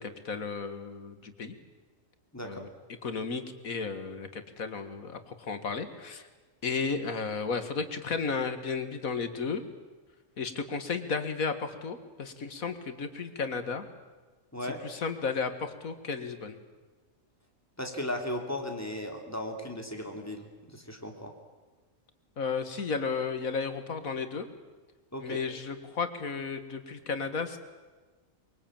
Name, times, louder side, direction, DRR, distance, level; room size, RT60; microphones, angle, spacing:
voice 1, 0.0-1.6 2.4-2.7 3.0-6.3 6.6-9.6 10.4-13.9 14.6-16.6 22.4-24.5 25.2-27.6, left 5 dB, 85° left, 9 dB, 2.2 m, -33 dB
voice 2, 17.8-21.3 25.1-25.4, left 1 dB, 10° left, 3 dB, 3.1 m, -36 dB
23.5 x 23.0 x 8.9 m, 1.3 s
omnidirectional pair, 1.4 m